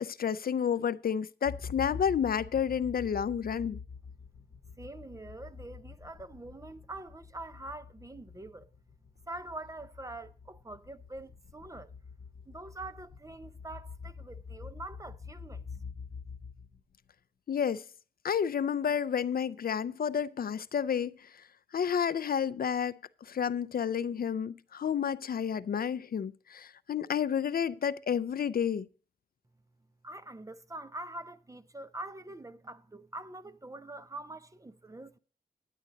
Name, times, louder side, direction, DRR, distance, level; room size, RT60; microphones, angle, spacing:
voice 1, 0.0-3.8 17.5-17.8 18.2-21.3 21.7-28.9, left 8 dB, 60° left, 0.4 m, -30 dB
sound 1, 1.4-17.1, left 5 dB, 90° left, 0.8 m, -46 dB
voice 2, 4.8-8.7 9.3-11.9 12.5-15.8 30.0-35.2, right 2 dB, 20° right, 0.4 m, -44 dB
10.0 x 10.0 x 3.9 m
wide cardioid pair, 150°, 18 cm